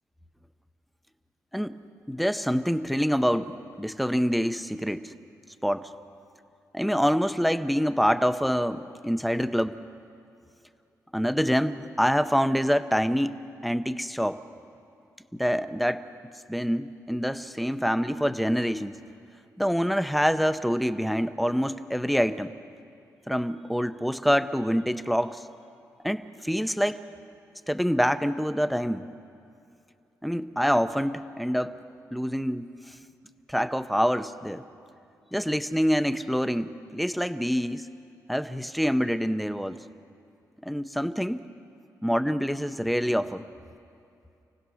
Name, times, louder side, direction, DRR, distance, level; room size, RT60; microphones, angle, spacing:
voice 1, 2.1-5.1 5.6-5.9 6.7-9.8 11.1-13.4 13.6-14.4 15.4-16.1 16.5-19.0 19.6-22.5 23.3-25.4 26.0-27.0 27.7-29.0 30.2-31.7 32.1-32.9 33.5-34.6 35.3-37.9 38.3-39.8 40.6-41.4 42.0-43.4, equal, ahead, 10 dB, 0.7 m, -26 dB
27.5 x 17.0 x 6.4 m, 2.6 s
wide cardioid pair, 140°, 6 cm